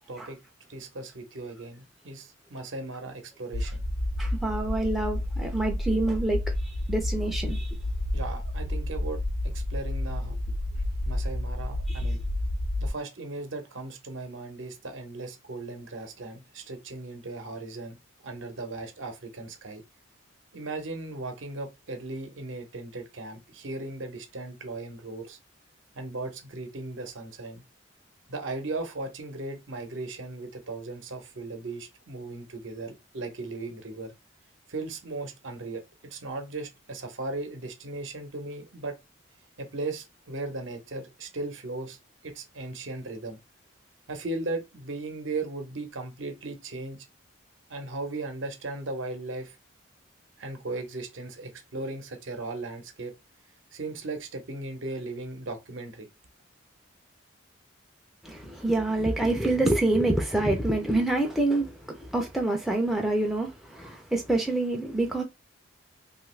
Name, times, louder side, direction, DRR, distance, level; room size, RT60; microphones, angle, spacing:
voice 1, 0.7-3.8 8.1-10.3 11.0-12.2 12.8-18.0 18.2-19.8 20.5-25.4 25.9-27.6 28.3-34.1 34.7-38.9 39.6-42.0 42.2-43.4 44.1-47.1 47.7-49.6 50.4-53.1 53.7-56.1, right 2 dB, 65° right, 0.7 m, -37 dB
sound 1, 3.5-12.9, left 1 dB, 85° left, 0.7 m, -30 dB
voice 2, 4.2-6.4 6.9-7.7 11.9-12.1 58.2-65.2, right 2 dB, ahead, 0.4 m, -26 dB
2.9 x 2.4 x 3.1 m
head